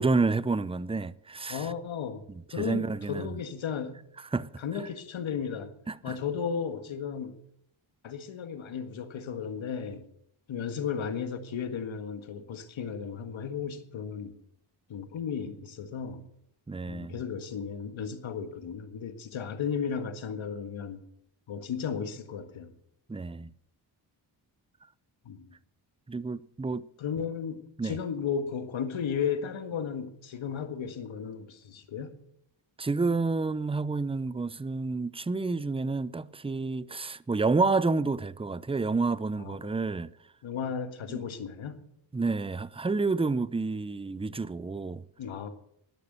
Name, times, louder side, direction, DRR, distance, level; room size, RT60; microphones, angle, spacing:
voice 1, 0.0-1.7 2.6-3.3 4.3-4.5 5.9-6.2 16.7-17.2 23.1-23.5 26.1-26.9 27.8-28.0 32.8-40.1 41.1-41.2 42.1-45.0, right 3 dB, 10° right, 0.6 m, -29 dB
voice 2, 1.5-2.2 2.5-4.0 4.6-5.7 6.0-7.4 8.0-10.1 10.5-14.3 14.9-16.2 16.9-21.0 21.5-22.7 25.3-25.5 27.0-32.2 39.4-39.6 40.4-41.8 45.2-45.5, left 7 dB, 70° left, 1.7 m, -34 dB
19.5 x 6.7 x 6.7 m
supercardioid pair, 55°, 49 cm